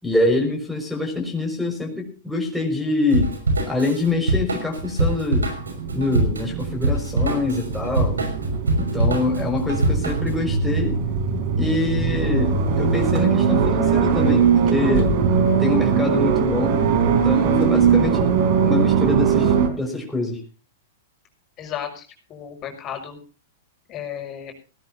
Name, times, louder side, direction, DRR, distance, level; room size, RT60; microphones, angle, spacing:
voice 1, 0.0-3.3 3.7-5.5 5.9-8.2 8.8-11.0 11.6-15.2 15.6-18.3 18.6-20.4, left 3 dB, ahead, -1 dB, 5.8 m, -25 dB
Drum kit / Drum, 3.1-10.4, right 2 dB, 85° right, 5.8 m, -24 dB
sound 1, 5.5-19.7, right 6 dB, 50° right, 3.8 m, -21 dB
voice 2, 21.6-22.0 22.3-23.2 23.9-24.5, left 9 dB, 30° left, 3 dB, 6.0 m, -33 dB
19.5 x 17.5 x 2.8 m, 0.35 s
figure-of-eight pair, 105°, 0 cm